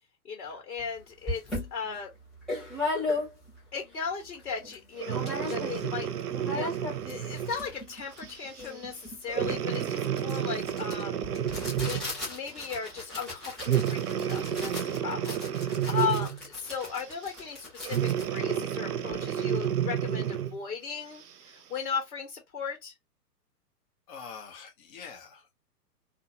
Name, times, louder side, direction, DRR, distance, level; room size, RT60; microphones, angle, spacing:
voice 1, 0.2-1.4 1.7-2.1 3.7-6.1 6.5-6.7 7.1-11.2 11.8-22.9, left 6 dB, 65° left, 1.1 m, -36 dB
sound 1, 0.8-0.9 1.3-3.6 4.1-4.2 4.3-4.8 5.1-5.9 6.2-19.3, left 2 dB, ahead, 0.5 m, -37 dB
Breathing, 5.0-7.6 8.2-8.5 9.3-12.2 13.6-16.5 17.8-20.6 21.2-21.3, right 9 dB, 70° right, 0.6 m, -30 dB
voice 2, 24.1-25.5, left 6 dB, 25° left, 0.8 m, -45 dB
2.7 x 2.2 x 2.6 m
figure-of-eight pair, 115°, 49 cm